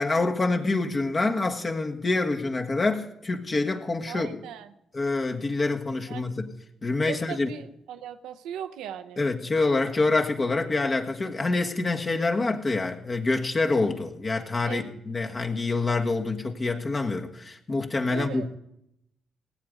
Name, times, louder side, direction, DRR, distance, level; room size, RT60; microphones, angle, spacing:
voice 1, 0.0-4.4 4.9-6.5 6.8-7.5 9.2-18.5, left 3 dB, 40° left, 3 dB, 1.5 m, -26 dB
voice 2, 4.1-4.7 6.1-6.2 7.1-9.3 14.7-14.9 18.1-18.5, right 9 dB, 85° right, 9 dB, 0.7 m, -38 dB
18.0 x 8.1 x 5.3 m, 0.80 s
supercardioid pair, 60°, 0 cm